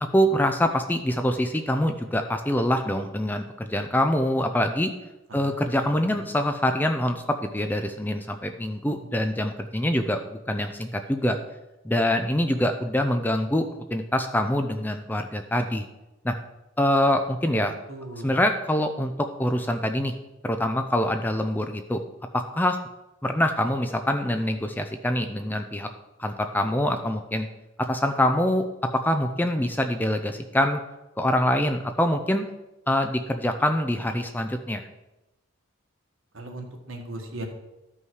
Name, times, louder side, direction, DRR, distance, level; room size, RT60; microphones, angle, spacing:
voice 1, 0.1-4.9 5.3-11.4 11.8-15.9 16.2-16.3 16.8-17.7 18.2-20.1 20.4-22.0 22.3-22.8 23.2-25.9 26.2-27.5 27.8-28.6 28.9-30.8 31.2-32.5 32.9-34.9, left 1 dB, 10° left, 6 dB, 0.5 m, -25 dB
voice 2, 5.3-6.3 17.9-18.3 36.3-37.5, right 1 dB, 65° right, 2 dB, 1.7 m, -38 dB
13.0 x 5.5 x 4.8 m, 0.96 s
head